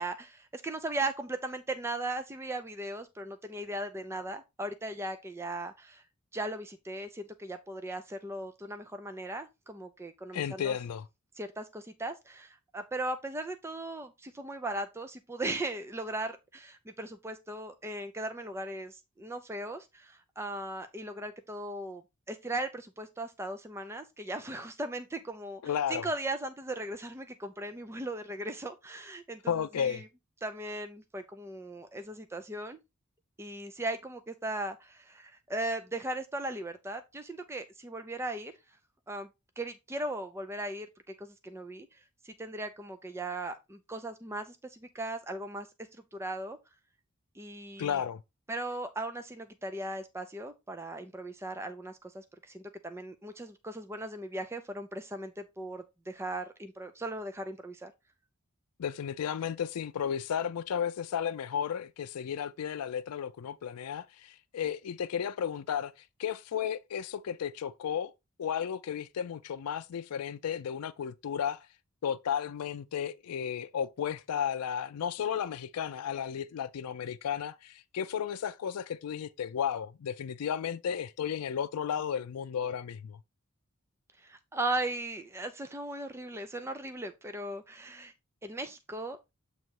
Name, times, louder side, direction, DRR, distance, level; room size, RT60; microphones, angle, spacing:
voice 1, 0.0-6.0 6.3-10.8 11.4-22.0 22.3-25.6 25.9-30.1 30.4-32.8 33.4-38.5 39.1-39.3 39.6-40.9 41.2-45.7 46.1-46.6 47.3-48.0 48.5-57.9 84.2-88.1 88.4-89.2, right 2 dB, 10° right, 0.4 m, -38 dB
voice 2, 10.3-11.0 25.6-26.0 29.5-30.0 47.8-48.2 58.8-65.9 66.2-68.1 68.4-71.7 72.0-83.2, left 8 dB, 90° left, 0.4 m, -33 dB
7.6 x 3.0 x 4.6 m
head